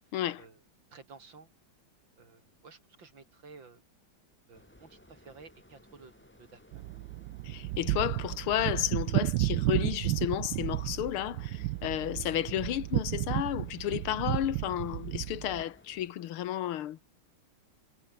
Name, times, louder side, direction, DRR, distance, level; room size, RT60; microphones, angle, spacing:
voice 1, 0.1-0.5 7.4-17.0, left 12 dB, 80° left, 1.9 m, -32 dB
voice 2, 0.9-1.5 2.2-3.8 4.5-6.1 6.4-6.9, right 4 dB, 60° right, 4.0 m, -53 dB
sound 1, 4.5-16.1, left 1 dB, 5° left, 1.9 m, -59 dB
sound 2, 6.7-15.6, right 17 dB, 75° right, 1.1 m, -33 dB
omnidirectional pair, 2.4 m